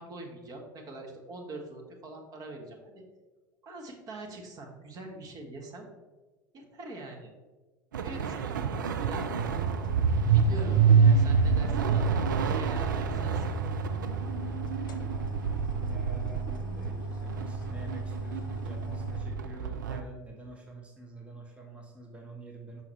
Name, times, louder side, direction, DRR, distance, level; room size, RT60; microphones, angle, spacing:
voice 1, 0.0-3.0 3.6-5.9 6.5-7.3 8.0-9.2 10.3-12.1 12.4-13.4, right 2 dB, 35° right, 1 dB, 1.1 m, -43 dB
sound 1, 7.9-20.0, right 6 dB, 70° right, 0.4 m, -27 dB
sound 2, 9.3-19.2, right 2 dB, 75° left, 0.6 m, -37 dB
voice 2, 15.0-22.8, right 2 dB, 10° right, 0 dB, 0.9 m, -47 dB
5.6 x 5.5 x 3.1 m, 1.3 s
figure-of-eight pair, 70°, 11 cm